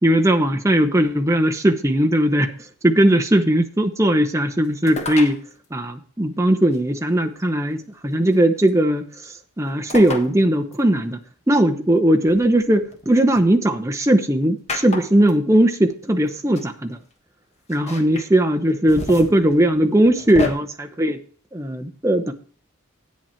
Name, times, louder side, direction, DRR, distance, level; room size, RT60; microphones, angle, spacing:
voice 1, 0.0-2.5 2.8-5.4 5.7-11.2 11.5-17.0 17.7-21.2 21.5-22.3, right 1 dB, 15° right, 4 dB, 0.9 m, -18 dB
sound 1, 4.9-5.4 6.7-6.8 8.3-8.7 9.9-10.3 10.7-10.8 12.2-13.4 14.7-15.3 16.3-16.4 16.6-16.7 17.7-18.3 18.7-20.5, left 3 dB, 30° left, 1.3 m, -31 dB
10.5 x 8.8 x 4.4 m, 0.43 s
head